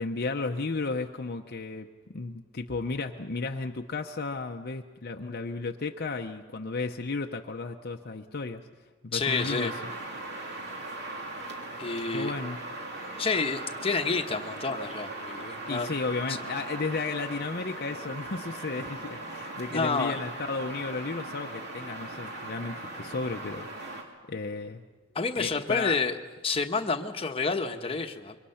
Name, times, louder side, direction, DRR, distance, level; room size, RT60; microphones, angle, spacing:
voice 1, 0.0-1.9 2.1-8.6 9.0-9.8 12.1-12.6 15.7-24.8 25.4-26.0, left 3 dB, 50° left, 3 dB, 0.8 m, -34 dB
voice 2, 9.1-9.7 11.8-12.3 13.2-15.9 16.3-16.4 19.7-20.2 25.1-26.2 26.4-28.4, left 4 dB, 30° left, 4 dB, 1.1 m, -29 dB
sound 1, 9.2-24.0, right 2 dB, 55° right, 2.9 m, -39 dB
25.5 x 23.5 x 5.8 m, 1.3 s
head